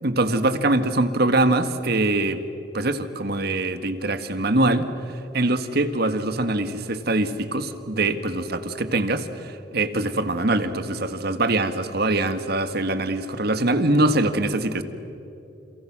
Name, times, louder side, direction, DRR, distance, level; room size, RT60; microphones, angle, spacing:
voice 1, 0.0-2.4 2.7-4.9 5.3-14.8, right 2 dB, 60° right, 10 dB, 1.8 m, -23 dB
30.0 x 30.0 x 6.1 m, 3.0 s
head